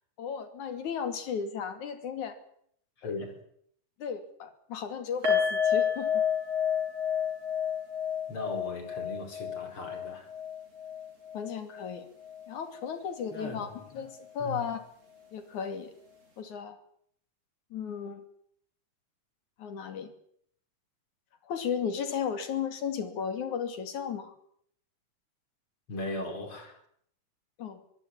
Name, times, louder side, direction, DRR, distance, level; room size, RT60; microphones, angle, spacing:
voice 1, 0.2-2.4 3.0-3.2 4.0-6.2 11.3-12.1 12.5-14.8 15.3-15.9 16.4-16.8 17.7-18.2 19.6-20.1 21.4-24.3 27.6-27.8, left 7 dB, 65° left, 10 dB, 3.9 m, -35 dB
voice 2, 3.0-3.4 8.3-10.3 13.3-13.9 14.4-14.6 25.9-26.8, left 2 dB, 40° left, 6 dB, 5.2 m, -38 dB
sound 1, 5.2-12.4 12.7-12.9 13.3-13.4, left 8 dB, 50° right, 7.7 m, -31 dB
23.5 x 15.5 x 9.9 m, 0.67 s
omnidirectional pair, 3.8 m